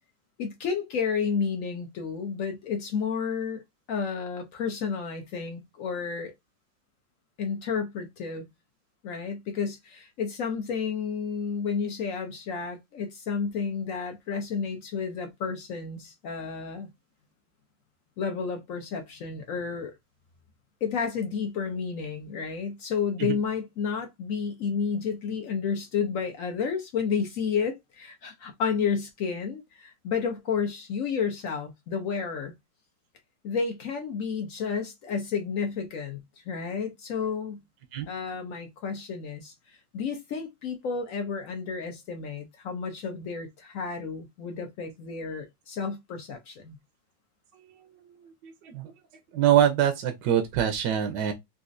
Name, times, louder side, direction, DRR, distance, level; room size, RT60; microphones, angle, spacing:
voice 1, 0.4-3.6 3.9-6.3 7.4-8.5 9.0-16.9 18.2-20.0 20.8-32.5 33.4-37.6 38.1-46.7, left 6 dB, 75° left, 0.7 m, -31 dB
voice 2, 48.4-48.9 49.3-51.3, right 10 dB, 70° right, 1.1 m, -24 dB
4.0 x 2.5 x 2.5 m
omnidirectional pair, 2.2 m